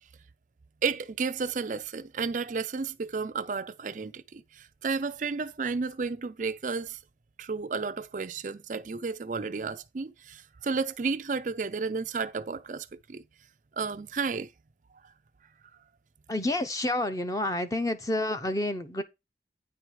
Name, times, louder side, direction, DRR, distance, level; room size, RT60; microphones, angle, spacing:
voice 1, 0.8-7.0 7.4-13.2 13.8-14.5, right 4 dB, 45° right, 0.4 m, -32 dB
voice 2, 16.3-19.0, left 1 dB, 20° left, 0.8 m, -29 dB
9.3 x 4.7 x 4.7 m
head